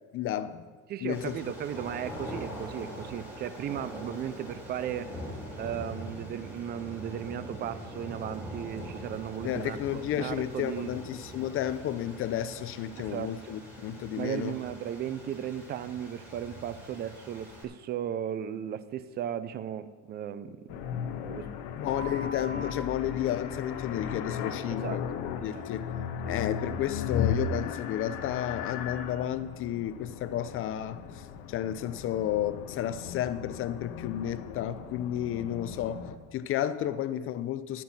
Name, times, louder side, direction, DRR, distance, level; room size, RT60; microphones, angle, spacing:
voice 1, 0.1-0.6 1.0-1.4 9.4-14.5 21.8-25.0 25.4-25.9 26.3-36.0 36.3-37.8, left 11 dB, 40° left, 12 dB, 0.6 m, -32 dB
voice 2, 0.9-11.0 13.0-13.3 14.2-20.7 21.2-21.5 21.8-21.9 24.7-25.0 25.4-25.6 26.2-26.3, right 10 dB, 30° right, 14 dB, 0.5 m, -36 dB
sound 1, 1.1-17.6, equal, 5° right, 2.9 m, -43 dB
sound 2, 20.7-36.1, left 7 dB, 75° left, 1.2 m, -36 dB
sound 3, 21.9-22.7 25.5-25.6, right 2 dB, 70° right, 3.8 m, -40 dB
12.0 x 5.7 x 8.8 m, 1.4 s
cardioid pair, 150°, 34 cm